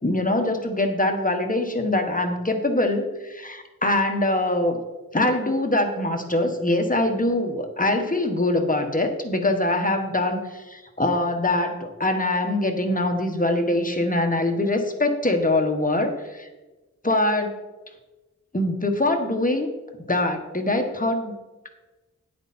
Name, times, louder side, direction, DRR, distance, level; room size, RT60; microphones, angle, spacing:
voice 1, 0.0-4.8 5.1-16.5 17.0-17.6 18.5-19.7 20.1-21.3, left 1 dB, 30° left, 4 dB, 1.5 m, -23 dB
9.8 x 8.2 x 4.4 m, 1.1 s
wide cardioid pair, 55°, 29 cm